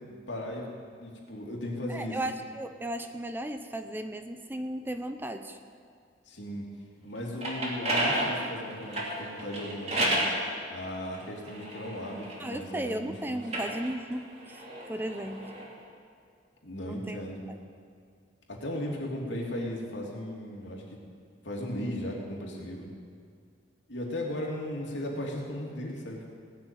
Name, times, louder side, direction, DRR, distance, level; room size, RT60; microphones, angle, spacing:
voice 1, 0.1-0.7 1.0-2.2 6.3-6.6 7.0-10.2 10.7-13.4 16.6-17.4 18.5-21.0 21.4-22.9 23.9-26.4, left 1 dB, 75° left, -2 dB, 2.7 m, -36 dB
voice 2, 1.9-5.6 12.4-15.5 16.8-17.2 17.5-17.6, right 1 dB, 10° right, 7 dB, 0.6 m, -35 dB
sound 1, 7.2-10.4 11.1-12.8 13.4-15.7, right 1 dB, 35° right, 2.6 m, -32 dB
18.0 x 6.4 x 9.0 m, 2.2 s
head